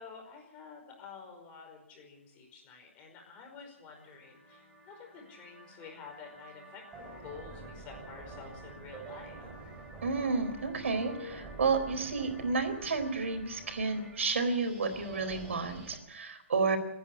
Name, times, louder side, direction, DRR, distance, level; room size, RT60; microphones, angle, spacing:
voice 1, 0.0-9.5, left 5 dB, 20° left, 3 dB, 5.2 m, -50 dB
sound 1, 3.9-16.0, right 2 dB, 10° right, 3.5 m, -48 dB
voice 2, 10.0-16.8, right 4 dB, 80° right, 7 dB, 4.2 m, -31 dB
26.0 x 10.5 x 9.8 m, 0.85 s
hypercardioid pair, 160°, 7 cm